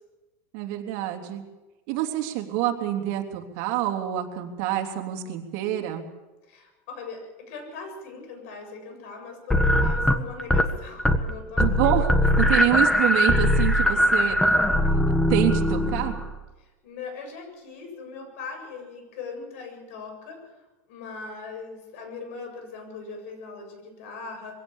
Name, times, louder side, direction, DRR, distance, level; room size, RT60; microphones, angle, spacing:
voice 1, 0.5-1.4 1.9-6.1 11.6-12.1 12.4-14.4 15.3-16.2, right 13 dB, 60° right, 3 dB, 3.3 m, -27 dB
voice 2, 6.5-12.1 12.4-12.7 16.8-20.5 20.9-24.6, left 4 dB, 80° left, 5 dB, 7.8 m, -40 dB
sound 1, 9.5-10.7 11.0-11.3 11.6-16.3, left 1 dB, 5° left, 1.6 m, -21 dB
23.5 x 17.0 x 7.3 m, 1.1 s
supercardioid pair, 145°, 7 cm